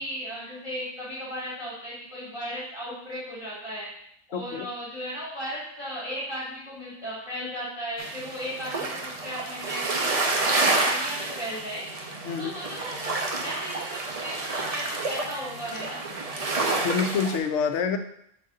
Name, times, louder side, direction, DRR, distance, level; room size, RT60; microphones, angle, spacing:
voice 1, 0.0-3.9 4.3-11.8 12.4-13.1 13.4-16.1, equal, 20° left, -10 dB, 2.0 m, -36 dB
voice 2, 4.3-4.7 12.2-12.5 16.7-18.0, left 6 dB, 75° left, 7 dB, 1.0 m, -27 dB
sound 1, 8.0-17.4, right 3 dB, 40° right, 0.6 m, -29 dB
6.5 x 4.0 x 3.8 m, 0.70 s
omnidirectional pair, 1.3 m